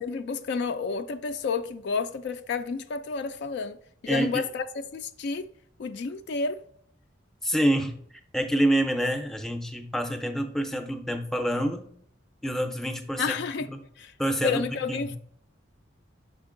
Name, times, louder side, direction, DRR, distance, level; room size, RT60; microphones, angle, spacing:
voice 1, 0.0-3.8 4.0-4.6 4.9-5.5 5.8-6.6 13.2-13.7 14.0-14.1 14.4-15.2, left 5 dB, 60° left, 0.3 m, -30 dB
voice 2, 7.4-8.0 8.3-11.9 12.4-13.4 14.2-14.6 14.9-15.1, right 1 dB, ahead, 0.5 m, -26 dB
6.1 x 4.4 x 3.7 m
head